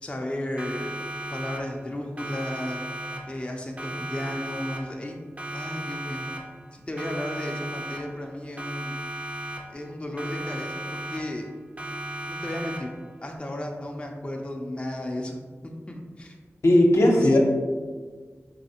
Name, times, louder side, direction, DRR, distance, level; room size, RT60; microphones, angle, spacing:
voice 1, 0.0-1.0 1.3-2.8 3.3-5.2 5.5-6.3 6.9-8.9 9.7-11.5 12.3-12.9 13.2-15.4 15.6-16.4 17.1-17.4, left 1 dB, 20° left, 1 dB, 0.5 m, -34 dB
Siren, 0.6-1.9 2.2-3.5 3.8-5.1 5.4-6.7 7.0-8.3 8.6-9.9 10.2-11.5 11.8-13.1, right 1 dB, 25° right, 0.6 m, -36 dB
voice 2, 16.6-17.4, left 1 dB, 70° left, -1 dB, 0.7 m, -17 dB
4.0 x 3.1 x 2.8 m, 1.5 s
cardioid pair, 40°, 5 cm